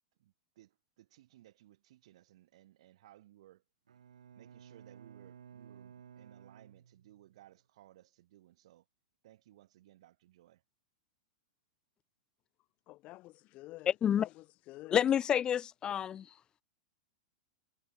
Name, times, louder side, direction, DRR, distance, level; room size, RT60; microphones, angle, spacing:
voice 1, 0.2-3.6 4.3-8.8 9.2-10.6, right 14 dB, 65° right, 3.3 m, -61 dB
Bowed string instrument, 3.9-7.4, right 8 dB, 85° right, 7.5 m, -55 dB
voice 2, 12.9-15.0, left 19 dB, 40° left, 1.0 m, -50 dB
voice 3, 13.9-14.3 14.9-16.3, left 9 dB, 25° left, 0.4 m, -29 dB
hypercardioid pair, 120°, 3 cm